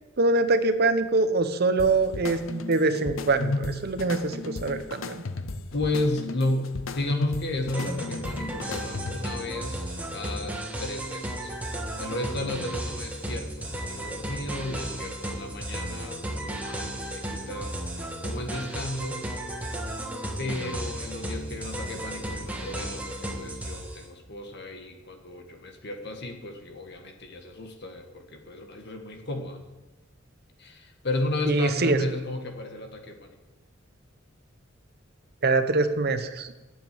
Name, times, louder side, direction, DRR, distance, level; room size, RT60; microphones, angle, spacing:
voice 1, 0.2-5.2 31.5-32.0 35.4-36.5, right 3 dB, 50° right, 9 dB, 0.9 m, -24 dB
sound 1, 1.8-9.4, left 2 dB, 90° left, 0.8 m, -34 dB
voice 2, 5.7-10.5 10.8-11.5 12.0-17.7 18.2-19.2 20.4-29.6 30.6-33.4, left 2 dB, 55° left, 4 dB, 1.6 m, -33 dB
sound 2, 7.7-24.0, right 1 dB, 10° right, 1.5 m, -34 dB
9.2 x 7.4 x 8.9 m, 1.1 s
head